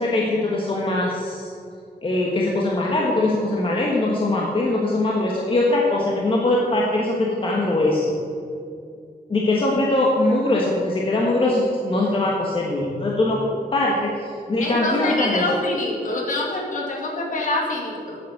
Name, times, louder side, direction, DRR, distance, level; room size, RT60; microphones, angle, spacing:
voice 1, 0.0-1.5 2.0-8.1 9.3-13.4 13.7-15.4, left 2 dB, 35° left, -3 dB, 1.4 m, -21 dB
voice 2, 14.6-18.2, left 2 dB, 55° left, -1 dB, 2.4 m, -26 dB
9.2 x 8.3 x 8.0 m, 2.4 s
wide cardioid pair, 160°, 16 cm